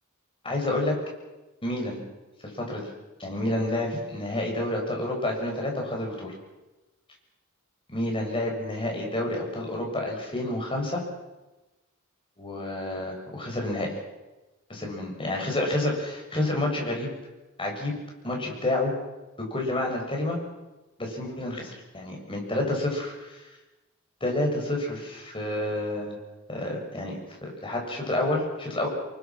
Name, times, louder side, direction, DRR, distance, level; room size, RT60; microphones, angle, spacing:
voice 1, 0.4-1.0 1.6-2.0 2.4-2.9 3.2-6.3 7.9-11.0 12.4-13.9 14.7-17.1 17.6-17.9 18.2-18.9 19.4-20.4 21.0-23.4 24.2-26.2 26.5-28.9, left 1 dB, 25° left, 0 dB, 7.5 m, -29 dB
29.0 x 23.5 x 6.2 m, 1.1 s
head